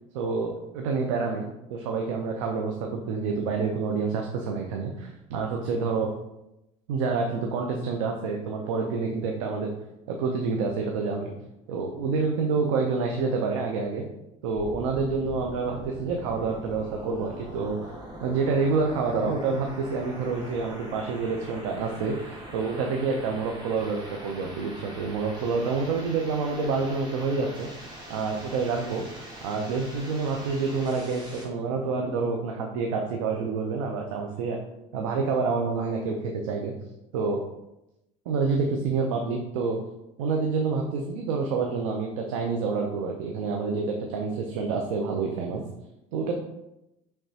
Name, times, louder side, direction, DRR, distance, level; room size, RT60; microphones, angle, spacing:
voice 1, 0.1-6.1 6.9-9.7 10.1-11.3 11.7-14.0 14.4-17.9 18.2-27.7 28.1-29.0 29.4-34.6 34.9-36.7 37.1-37.4 38.3-39.8 40.2-45.6 46.1-46.3, right 4 dB, 85° right, 2 dB, 0.6 m, -28 dB
sound 1, 14.5-31.5, right 1 dB, 25° right, 1.6 m, -43 dB
5.5 x 3.4 x 2.8 m, 0.90 s
supercardioid pair, 90°, 16 cm